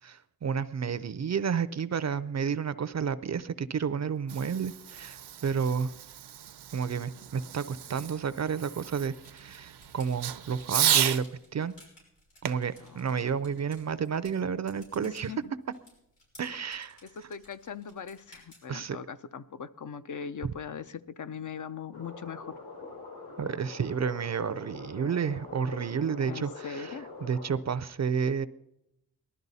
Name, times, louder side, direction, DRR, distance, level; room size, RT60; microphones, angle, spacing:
voice 1, 0.0-5.9 6.7-11.2 11.5-11.7 12.4-15.3 16.4-17.3 18.7-19.0 20.4-20.5 23.4-28.5, right 6 dB, 45° right, 14 dB, 0.5 m, -31 dB
Fireworks, 4.0-11.3 12.4-14.1, right 10 dB, 80° right, 0.6 m, -33 dB
sound 1, 9.1-18.9, left 1 dB, 85° left, 6.2 m, -59 dB
voice 2, 12.8-13.6 15.0-15.4 16.5-16.6 17.0-22.5 26.2-27.1, left 7 dB, 50° left, 12 dB, 0.5 m, -41 dB
sound 2, 21.9-27.5, left 3 dB, 70° left, 5.2 m, -44 dB
19.0 x 12.0 x 4.1 m, 0.82 s
wide cardioid pair, 125°, 39 cm